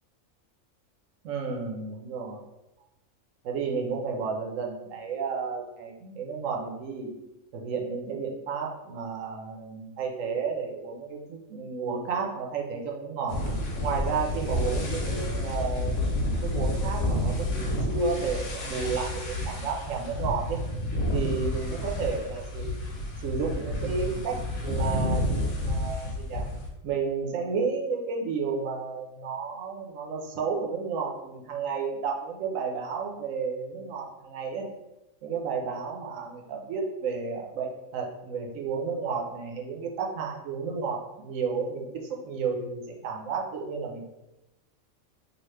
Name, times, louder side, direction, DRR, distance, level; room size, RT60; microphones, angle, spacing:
voice 1, 1.2-2.4 3.4-7.1 7.5-13.4 13.8-15.9 16.4-20.6 21.1-22.7 23.2-26.5 26.8-34.7 35.2-44.0, right 5 dB, 75° right, 1 dB, 0.9 m, -32 dB
sound 1, 13.3-26.7, left 1 dB, 85° left, 1.2 m, -30 dB
2.9 x 2.4 x 3.2 m, 0.93 s
omnidirectional pair, 1.4 m